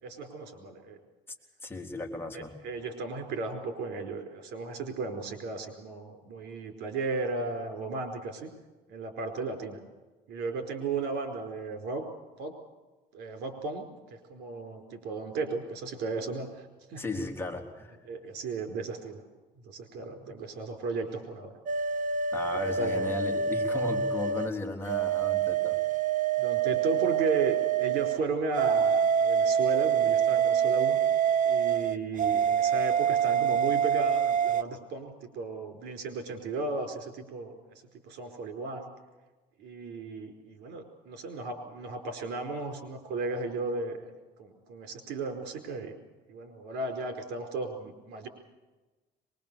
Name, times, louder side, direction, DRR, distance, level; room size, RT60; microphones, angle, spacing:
voice 1, 0.0-1.0 2.3-8.5 8.9-9.8 10.3-12.0 12.4-12.5 13.1-17.0 18.1-19.2 19.7-21.5 22.7-23.1 26.4-31.0 31.4-37.6 38.0-38.9 39.6-44.1 44.4-46.0 46.3-48.3, right 3 dB, 80° right, 5 dB, 4.7 m, -35 dB
voice 2, 1.6-2.5 17.0-18.0 20.0-20.4 22.3-25.8, left 2 dB, 15° left, 1 dB, 3.6 m, -36 dB
sound 1, 21.7-24.5 24.9-28.2 28.6-34.6, right 8 dB, 50° right, 1.1 m, -26 dB
23.5 x 22.0 x 7.0 m, 1.2 s
cardioid pair, 110°, 17 cm